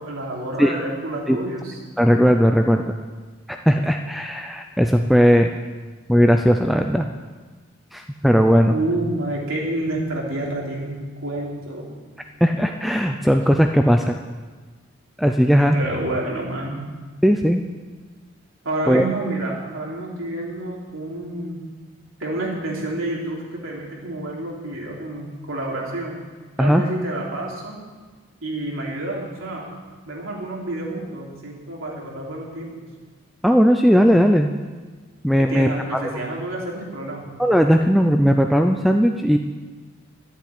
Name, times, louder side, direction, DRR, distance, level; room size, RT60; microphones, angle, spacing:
voice 1, 0.0-1.8 8.7-11.9 15.7-16.9 18.6-21.6 22.2-26.2 26.6-27.8 28.4-29.7 30.1-32.7 35.4-37.2, right 1 dB, 90° right, -3 dB, 3.4 m, -29 dB
voice 2, 2.0-2.9 3.5-5.5 6.1-7.1 7.9-8.7 12.4-14.2 15.2-15.8 17.2-17.6 18.9-19.1 26.6-26.8 33.4-34.5 35.2-36.0 37.4-39.4, equal, ahead, 5 dB, 0.4 m, -17 dB
12.5 x 8.2 x 8.4 m, 1.4 s
head